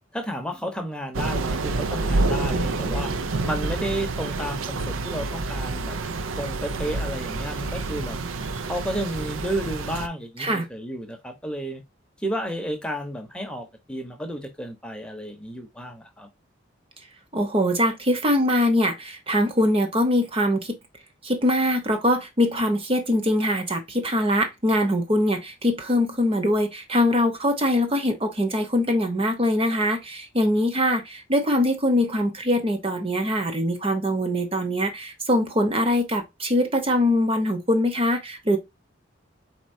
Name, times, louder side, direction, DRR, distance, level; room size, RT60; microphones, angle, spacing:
voice 1, 0.1-3.1 3.4-6.0 6.4-8.2 8.6-11.8 12.2-16.3, equal, 5° left, 0.8 m, -32 dB
Thunder / Rain, 1.1-10.1, right 3 dB, 85° right, 0.5 m, -28 dB
voice 2, 17.3-20.8 21.2-38.6, left 1 dB, 30° right, 0.9 m, -23 dB
4.4 x 4.1 x 2.6 m
head